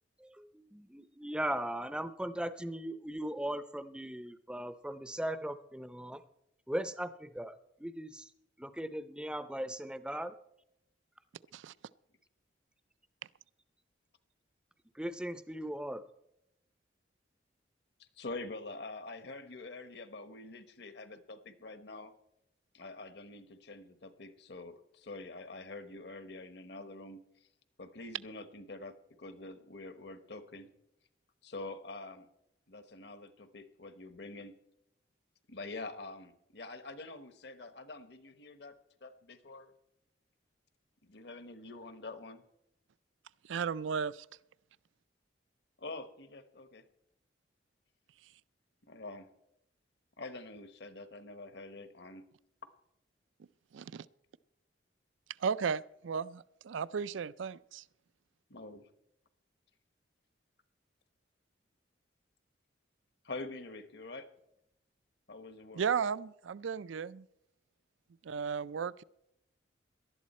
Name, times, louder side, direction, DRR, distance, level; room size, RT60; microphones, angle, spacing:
voice 1, 0.2-6.2 6.7-8.3 8.6-10.3 14.9-16.1, right 1 dB, 5° right, 12 dB, 0.5 m, -38 dB
voice 2, 18.0-22.1 22.7-27.2 27.8-30.7 31.4-32.3 32.7-34.6 35.5-38.8 39.0-39.7 41.0-42.4 45.8-46.8 48.9-49.3 50.2-52.3 58.5-58.8 63.2-64.3 65.3-65.8, left 2 dB, 60° left, 10 dB, 1.1 m, -46 dB
voice 3, 43.5-44.3 53.7-54.1 55.4-57.8 65.7-67.3 68.2-69.0, right 6 dB, 80° right, 19 dB, 0.4 m, -35 dB
18.5 x 12.0 x 4.2 m, 0.81 s
head